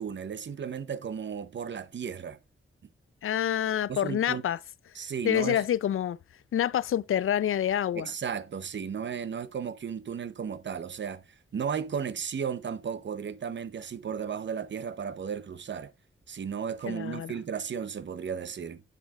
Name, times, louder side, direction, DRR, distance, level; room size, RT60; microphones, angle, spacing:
voice 1, 0.0-2.4 3.9-4.4 4.9-5.6 7.9-11.2 11.5-15.9 16.3-18.8, right 7 dB, 60° right, 0.7 m, -34 dB
voice 2, 3.2-4.6 5.2-6.2 6.5-8.1 16.9-17.3, left 10 dB, 85° left, 0.4 m, -27 dB
8.3 x 7.1 x 2.3 m
wide cardioid pair, 125°, 21 cm